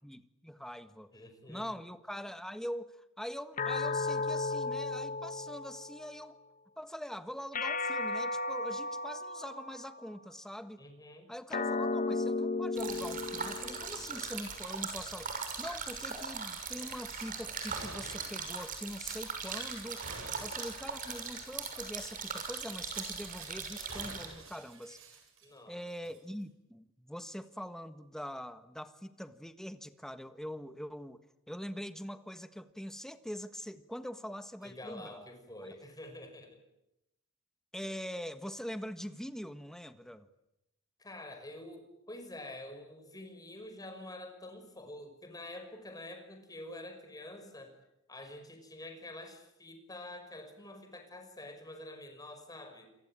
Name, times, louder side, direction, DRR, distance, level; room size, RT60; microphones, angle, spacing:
voice 1, 0.0-1.1 1.5-6.4 6.8-10.8 11.3-20.1 20.4-25.2 25.7-35.2 37.7-40.3, equal, ahead, 10 dB, 1.5 m, -43 dB
voice 2, 1.1-1.6 10.8-11.3 25.4-25.8 34.6-36.6 41.0-47.7 48.1-52.9, left 1 dB, 20° left, 7 dB, 5.5 m, -47 dB
sound 1, 3.6-6.2 7.5-10.1 11.5-14.1, left 3 dB, 40° left, 1.4 m, -34 dB
sound 2, 12.8-24.3, right 5 dB, 40° right, 6.5 m, -40 dB
Gunshot gunfire / Glass, 17.0-17.3 17.7-18.4 19.0-19.6 20.0-20.7 21.0-21.1 21.6-21.7 22.8-23.5 23.9-25.7 26.0-26.2, right 3 dB, 75° right, 7.1 m, -49 dB
28.5 x 23.5 x 8.9 m, 0.88 s
head